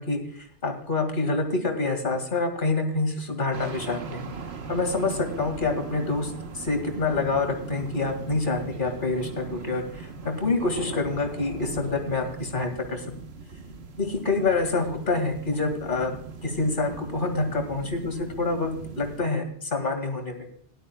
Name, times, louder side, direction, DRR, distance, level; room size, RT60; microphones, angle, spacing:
voice 1, 0.0-4.3 4.7-13.0 14.0-20.5, left 3 dB, 50° left, 5 dB, 2.2 m, -27 dB
sound 1, 3.5-19.2, right 4 dB, 75° right, 1.3 m, -39 dB
18.0 x 11.5 x 2.3 m, 0.62 s
omnidirectional pair, 1.1 m